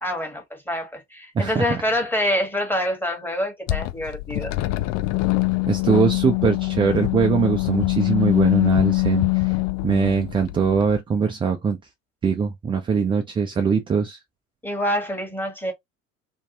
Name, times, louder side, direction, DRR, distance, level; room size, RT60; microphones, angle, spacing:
voice 1, 0.0-4.6 14.6-15.7, equal, 5° left, 1.3 m, -26 dB
voice 2, 1.3-1.7 5.7-9.6 9.8-11.8 12.2-14.2, right 6 dB, 15° right, 0.3 m, -22 dB
sound 1, 3.7-11.0, left 21 dB, 50° left, 0.6 m, -23 dB
2.6 x 2.2 x 2.7 m
hypercardioid pair, 70°, 41 cm